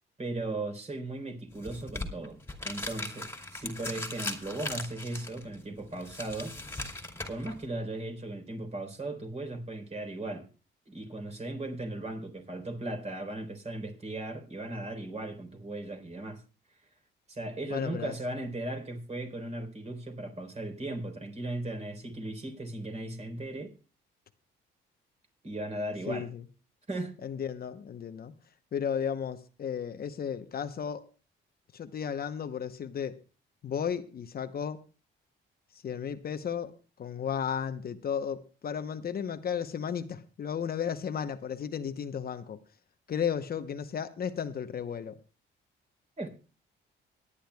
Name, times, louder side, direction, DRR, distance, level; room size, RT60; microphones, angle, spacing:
voice 1, 0.2-2.4 2.6-6.6 7.3-10.5 10.9-16.4 16.7-16.9 17.3-23.7 25.4-26.3 26.9-27.2 46.2-46.3, right 2 dB, 35° right, 5 dB, 3.9 m, -37 dB
sound 1, 1.5-7.6, left 2 dB, 10° left, 2.4 m, -39 dB
voice 2, 17.7-18.1 26.1-26.4 27.2-28.3 28.7-31.1 31.7-33.2 33.6-34.8 35.7-36.7 37.0-42.6 43.1-45.2, left 7 dB, 50° left, 9 dB, 0.9 m, -34 dB
25.0 x 10.0 x 2.3 m, 0.34 s
cardioid pair, 90°, 20 cm